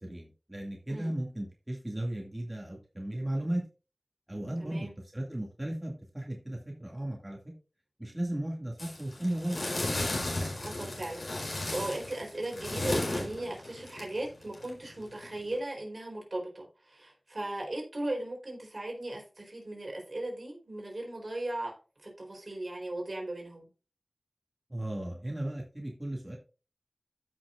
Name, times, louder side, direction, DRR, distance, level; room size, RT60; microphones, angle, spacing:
voice 1, 0.0-3.6 4.3-4.9 5.1-7.4 8.0-9.6 24.7-26.4, right 1 dB, 20° right, -1 dB, 2.5 m, -35 dB
voice 2, 4.6-4.9 10.6-21.8 22.0-23.7, right 1 dB, 60° right, 0 dB, 4.2 m, -37 dB
sound 1, 8.8-15.5, left 1 dB, 85° left, 4.4 m, -34 dB
14.5 x 6.1 x 2.6 m, 0.34 s
wide cardioid pair, 50°, 0 cm